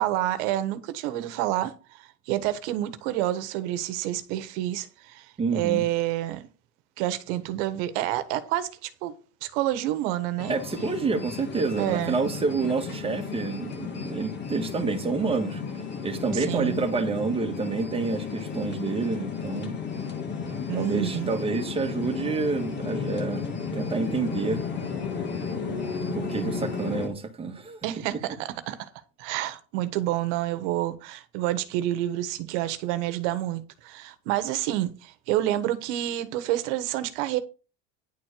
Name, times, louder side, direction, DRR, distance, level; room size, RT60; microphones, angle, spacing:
voice 1, 0.0-5.2 5.5-6.5 7.0-9.1 9.4-10.6 11.8-12.2 16.3-16.8 20.7-21.3 27.8-28.9 29.2-37.4, right 14 dB, 75° right, 1.4 m, -28 dB
voice 2, 5.4-5.8 10.5-19.8 20.7-23.5 23.7-24.6 26.1-27.8, right 4 dB, 15° right, 1.6 m, -28 dB
sound 1, 10.4-27.1, left 5 dB, 30° left, 1.8 m, -33 dB
10.5 x 4.5 x 6.7 m
cardioid pair, 145°, 35 cm